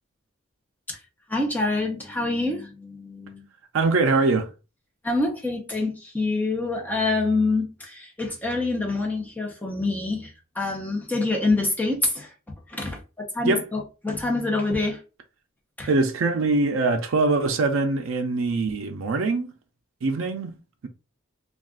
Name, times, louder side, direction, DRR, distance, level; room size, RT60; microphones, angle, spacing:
voice 1, 1.3-3.5 5.0-12.3 12.7-15.0 15.8-15.9, left 2 dB, 10° left, 0.6 m, -26 dB
voice 2, 3.7-4.5 13.4-13.6 15.9-19.5 20.0-20.6, right 3 dB, 70° right, 0.4 m, -23 dB
2.4 x 2.3 x 3.5 m
head